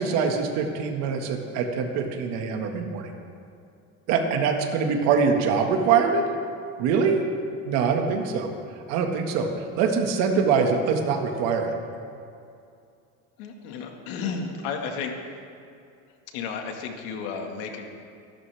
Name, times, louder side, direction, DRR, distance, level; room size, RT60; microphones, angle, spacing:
voice 1, 0.0-3.1 4.1-6.3 6.8-7.2 7.6-8.5 8.9-9.5 9.8-11.7, right 5 dB, 60° right, 3 dB, 1.9 m, -23 dB
voice 2, 13.4-15.1 16.3-17.9, left 5 dB, 85° left, 3 dB, 2.0 m, -32 dB
24.0 x 12.5 x 3.5 m, 2.5 s
cardioid pair, 165°, 30 cm